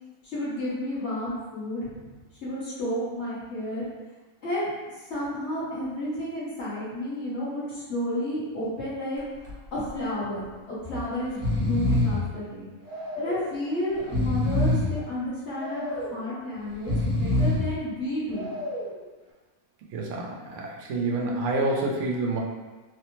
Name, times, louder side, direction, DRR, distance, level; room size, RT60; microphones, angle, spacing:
voice 1, 0.2-2.1 2.4-3.8 4.4-4.7 5.1-9.2 9.7-12.7 13.1-18.5, left 1 dB, 55° left, -9 dB, 1.4 m, -31 dB
Breathing, 9.2-9.5 9.9-10.0 10.8-11.0 11.3-12.3 12.9-13.5 14.0-15.0 15.6-16.2 16.7-17.7 18.3-19.0, left 1 dB, 30° right, 0.6 m, -26 dB
voice 2, 19.9-22.4, right 2 dB, 65° right, -2 dB, 0.8 m, -28 dB
3.3 x 2.0 x 3.0 m, 1.2 s
omnidirectional pair, 1.5 m